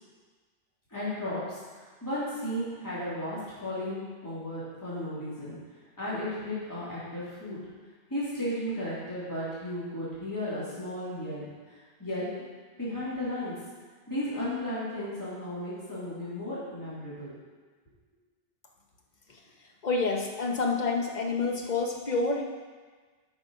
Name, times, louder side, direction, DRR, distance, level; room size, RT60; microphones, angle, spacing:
voice 1, 0.9-1.6 2.0-5.6 6.0-7.6 8.1-12.3 12.8-13.5 14.1-17.3, left 1 dB, 15° left, -11 dB, 2.8 m, -34 dB
voice 2, 19.8-22.4, left 3 dB, 40° left, 1 dB, 1.1 m, -28 dB
8.7 x 5.3 x 5.2 m, 1.4 s
omnidirectional pair, 1.2 m